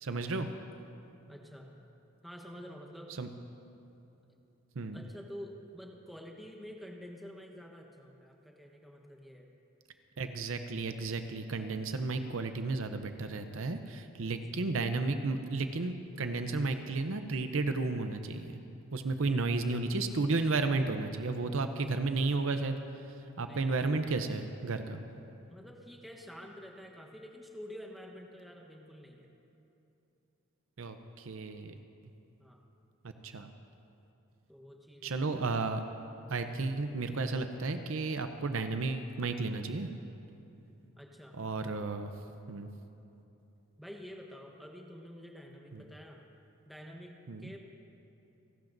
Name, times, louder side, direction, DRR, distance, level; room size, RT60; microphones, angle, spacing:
voice 1, 0.0-0.5 3.2-3.3 4.8-5.0 10.2-18.6 18.9-22.8 23.4-25.0 30.8-31.7 33.0-33.5 35.0-35.8 36.3-39.9 41.3-42.1 42.5-42.7 45.7-45.8 47.3-47.5, right 3 dB, 65° right, 7 dB, 0.6 m, -33 dB
voice 2, 1.3-1.7 2.2-3.1 4.9-9.5 14.2-14.7 23.4-24.4 25.5-29.3 32.4-32.6 34.5-35.3 41.0-41.4 41.8-41.9 43.8-46.2 46.6-47.6, equal, ahead, 0 dB, 1.1 m, -49 dB
29.0 x 12.0 x 2.6 m, 2.8 s
head